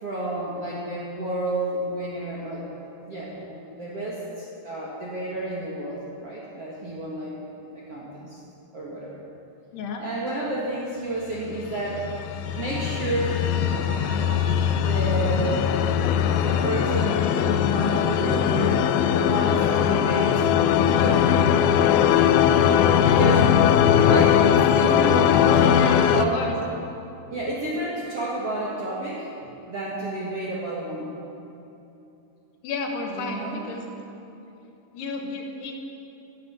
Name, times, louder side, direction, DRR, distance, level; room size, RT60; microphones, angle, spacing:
voice 1, 0.0-2.7 3.1-7.3 7.7-8.4 8.7-9.2 10.0-12.0 12.5-13.4 14.6-15.8 16.4-18.8 19.2-20.5 20.7-21.3 22.2-23.7 24.0-25.3 25.6-26.6 27.3-29.3 29.7-31.1 33.1-33.6, right 2 dB, 55° right, -5 dB, 1.8 m, -31 dB
voice 2, 9.7-10.0 25.5-26.6 32.6-33.9 34.9-35.7, left 3 dB, 70° left, 2 dB, 3.2 m, -31 dB
sound 1, 11.9-26.2, left 9 dB, 85° left, 3.0 m, -20 dB
sound 2, 12.2-17.3, equal, 15° left, 2.8 m, -42 dB
12.0 x 11.5 x 8.2 m, 2.8 s
omnidirectional pair, 5.1 m